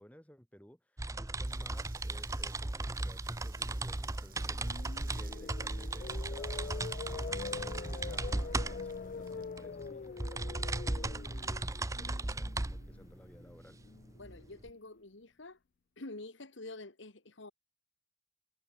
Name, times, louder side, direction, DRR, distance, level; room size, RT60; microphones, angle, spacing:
voice 1, 0.0-13.8, equal, 5° left, 3.8 m, -57 dB
sound 1, 1.0-14.7, right 2 dB, 15° right, 0.6 m, -37 dB
sound 2, 1.3-10.3, right 11 dB, 45° right, 3.2 m, -61 dB
sound 3, 4.2-14.4, left 5 dB, 45° left, 0.3 m, -45 dB
voice 2, 14.1-15.6 16.0-17.5, left 2 dB, 65° left, 1.9 m, -47 dB
head